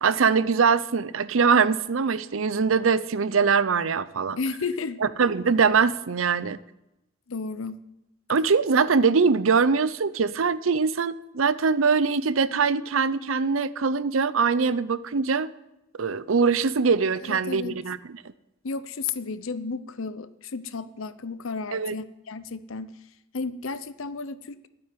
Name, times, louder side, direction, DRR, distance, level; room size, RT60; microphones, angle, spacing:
voice 1, 0.0-4.4 5.0-6.6 8.3-15.5 16.0-18.0 21.7-21.9, right 5 dB, 75° right, 16 dB, 0.6 m, -22 dB
voice 2, 4.4-5.0 7.3-7.8 17.2-17.7 18.6-22.9 23.3-24.6, left 4 dB, 80° left, 14 dB, 0.8 m, -33 dB
11.5 x 9.3 x 9.2 m, 0.89 s
head